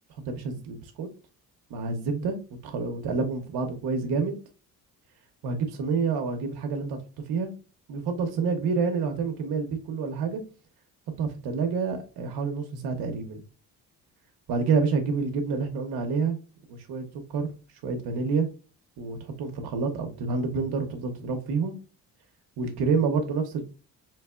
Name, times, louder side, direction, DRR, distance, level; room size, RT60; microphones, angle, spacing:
voice 1, 0.3-1.1 1.7-2.4 2.6-4.4 5.4-7.0 7.3-7.5 7.9-10.4 11.2-13.4 14.5-16.4 16.7-17.5 17.8-18.5 19.0-21.7 22.6-23.7, right 4 dB, 75° right, 4 dB, 0.8 m, -28 dB
4.0 x 2.9 x 2.3 m, 0.33 s
cardioid pair, 135°, 38 cm